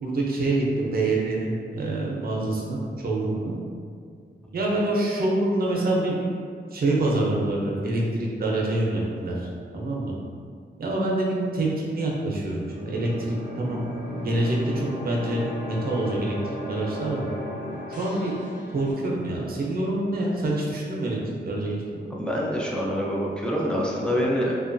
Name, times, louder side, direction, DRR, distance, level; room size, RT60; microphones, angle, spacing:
voice 1, 0.0-2.8 3.0-3.5 4.5-6.3 6.7-9.4 9.7-10.1 10.8-13.9 14.1-16.4 16.7-17.3 17.9-18.3 18.7-21.2 21.4-22.0, right 2 dB, 55° right, -3 dB, 0.5 m, -26 dB
sound 1, 12.5-18.9, left 1 dB, 85° left, 0.5 m, -36 dB
voice 2, 22.2-24.5, equal, 5° left, -4 dB, 0.4 m, -25 dB
2.9 x 2.2 x 2.5 m, 2.1 s
wide cardioid pair, 155°, 18 cm